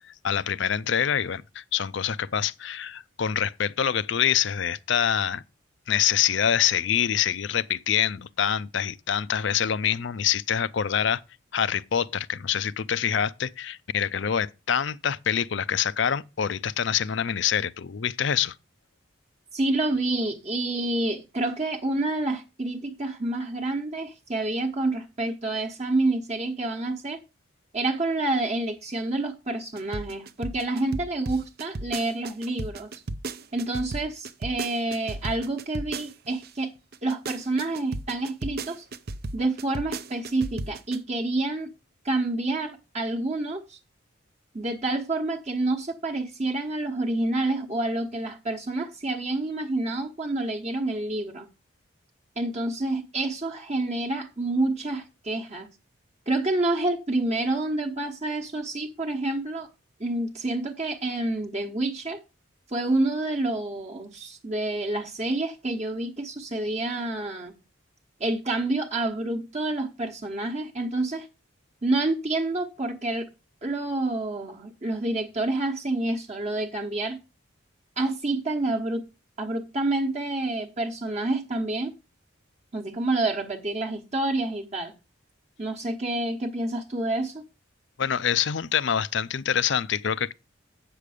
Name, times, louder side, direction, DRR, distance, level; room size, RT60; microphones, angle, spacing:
voice 1, 0.2-5.4 5.9-11.2 11.5-18.5 88.0-90.3, left 8 dB, 60° left, 0.5 m, -25 dB
voice 2, 19.5-27.2 27.7-32.9 33.5-36.7 37.0-38.8 39.3-41.7 42.0-43.8 44.5-51.5 52.4-55.7 56.3-59.7 60.0-62.2 62.7-67.6 68.2-71.3 71.8-73.3 73.6-77.2 78.0-79.0 79.4-81.9 82.7-84.9 85.6-87.4, right 2 dB, 35° right, 1.1 m, -28 dB
sound 1, 29.8-36.5 36.9-41.0, right 2 dB, 50° right, 0.6 m, -34 dB
8.6 x 6.7 x 4.9 m
head